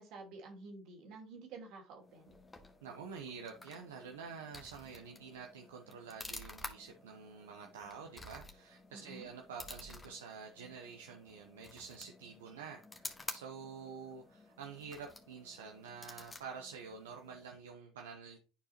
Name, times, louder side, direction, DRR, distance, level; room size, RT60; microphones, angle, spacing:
voice 1, 0.0-2.3 8.9-9.3, right 3 dB, 65° right, 1 dB, 2.5 m, -50 dB
sound 1, 2.0-17.6, left 2 dB, 15° left, 1.4 m, -52 dB
voice 2, 2.8-12.8 13.3-18.4, right 6 dB, 90° right, 3 dB, 0.7 m, -48 dB
10.5 x 4.6 x 2.9 m, 0.36 s
hypercardioid pair, 70°, 0 cm